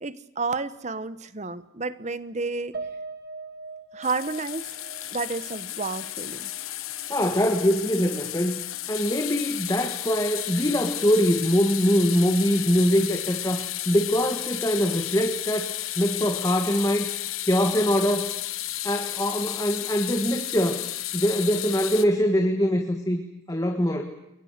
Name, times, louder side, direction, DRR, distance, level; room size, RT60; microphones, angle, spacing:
voice 1, 0.0-2.8 3.9-4.7 5.1-6.5, right 4 dB, 35° right, 15 dB, 1.0 m, -31 dB
Piano, 2.7-7.2 7.6-7.7 8.1-8.3, right 4 dB, 50° right, 1.8 m, -41 dB
sound 1, 4.0-22.1, left 14 dB, 85° left, 1.2 m, -33 dB
voice 2, 7.1-8.6 8.9-17.1 17.4-18.3 18.8-20.8 21.1-23.2 23.5-24.0, equal, 15° left, 4 dB, 1.7 m, -23 dB
29.0 x 22.5 x 6.7 m, 0.88 s
head